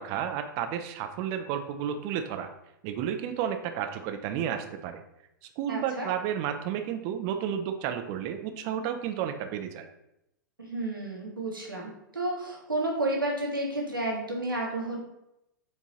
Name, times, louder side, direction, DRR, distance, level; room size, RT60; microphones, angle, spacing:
voice 1, 0.0-2.5 2.8-5.0 5.6-9.9, right 9 dB, 35° right, 7 dB, 0.4 m, -32 dB
voice 2, 5.7-6.1 10.6-15.0, right 1 dB, 85° right, -2 dB, 1.1 m, -31 dB
4.5 x 2.8 x 2.8 m, 0.84 s
figure-of-eight pair, 100°, 11 cm